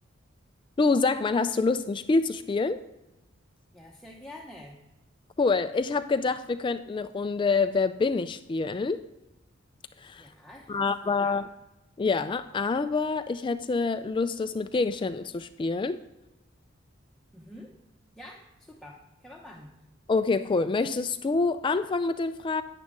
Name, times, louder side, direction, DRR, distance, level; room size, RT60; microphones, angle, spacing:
voice 1, 0.8-2.8 5.4-9.0 10.0-10.3 10.7-11.5 12.0-16.0 20.1-22.6, left 4 dB, 25° left, 11 dB, 0.3 m, -26 dB
voice 2, 3.7-4.8 10.2-11.4 17.3-17.7 18.2-19.7, left 1 dB, ahead, -2 dB, 0.9 m, -47 dB
10.0 x 9.9 x 3.6 m, 0.97 s
head